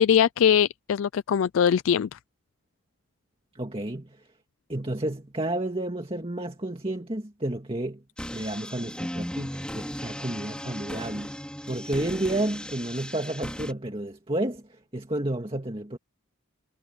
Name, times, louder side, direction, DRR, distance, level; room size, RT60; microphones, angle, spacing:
voice 1, 0.0-2.2, left 8 dB, 70° left, 0.3 m, -21 dB
voice 2, 3.5-4.2 4.7-8.0 8.3-11.3 11.7-16.0, right 1 dB, 25° right, 2.2 m, -31 dB
sound 1, 8.2-13.7, equal, 5° left, 2.8 m, -36 dB
head